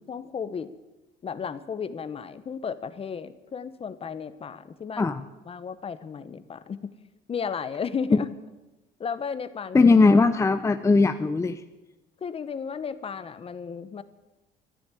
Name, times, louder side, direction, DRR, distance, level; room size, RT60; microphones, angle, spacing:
voice 1, 0.1-0.7 1.2-5.1 5.5-6.9 7.3-8.3 9.0-9.9 12.2-14.0, left 6 dB, 35° left, 14 dB, 1.0 m, -34 dB
voice 2, 9.7-11.6, left 3 dB, 15° left, 9 dB, 0.6 m, -19 dB
13.0 x 10.5 x 9.0 m, 1.1 s
cardioid pair, 110°, 17 cm